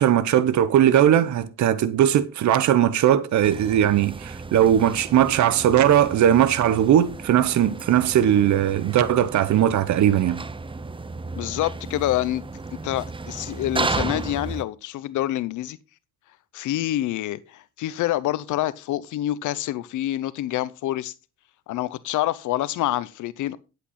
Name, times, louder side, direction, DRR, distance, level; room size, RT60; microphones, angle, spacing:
voice 1, 0.0-10.4, right 10 dB, 70° right, 0.9 m, -19 dB
sound 1, 3.4-14.6, right 3 dB, 15° right, 0.7 m, -34 dB
voice 2, 11.4-12.4 12.8-15.8 16.5-21.1 21.7-23.6, left 14 dB, 80° left, 0.7 m, -27 dB
9.8 x 8.3 x 4.2 m
cardioid pair, 90°, 30 cm